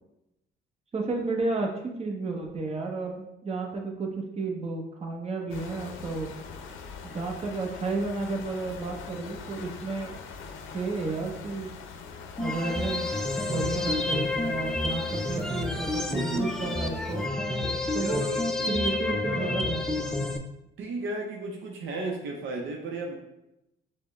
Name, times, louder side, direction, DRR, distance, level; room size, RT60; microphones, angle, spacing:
voice 1, 0.9-6.3 7.0-10.1 10.7-11.7 12.4-13.1 13.4-17.2 17.9-18.2 18.7-20.4, right 3 dB, 30° right, 1 dB, 0.8 m, -32 dB
sound 1, 5.5-17.3, left 5 dB, 85° left, 0.5 m, -43 dB
sound 2, 12.4-20.4, left 2 dB, ahead, 0.3 m, -29 dB
voice 2, 16.1-16.5 18.0-18.4 19.0-19.5 20.8-23.2, right 2 dB, 75° right, 0 dB, 0.6 m, -34 dB
5.8 x 2.1 x 3.2 m, 0.88 s
cardioid pair, 90°, 20 cm